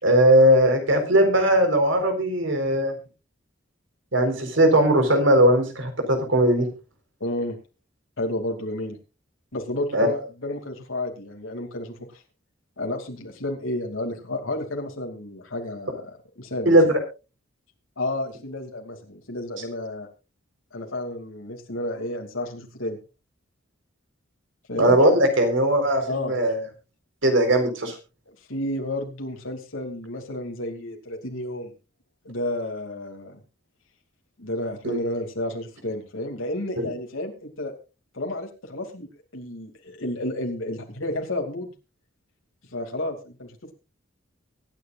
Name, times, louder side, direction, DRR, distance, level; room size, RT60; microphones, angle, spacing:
voice 1, 0.0-2.9 4.1-6.7 9.9-10.1 16.7-17.0 24.8-26.6 27.2-27.9 34.8-35.0 36.8-36.9, right 1 dB, 70° right, 6 dB, 4.3 m, -19 dB
voice 2, 7.2-7.6 8.2-9.0 9.5-12.2 12.8-16.9 18.0-20.1 20.7-23.0 24.7-25.0 26.1-26.3 28.5-31.7 32.2-33.4 34.4-37.7 38.1-39.1 39.3-41.7 42.7-43.7, left 1 dB, 85° left, 3 dB, 2.7 m, -31 dB
24.0 x 10.0 x 2.5 m, 0.30 s
head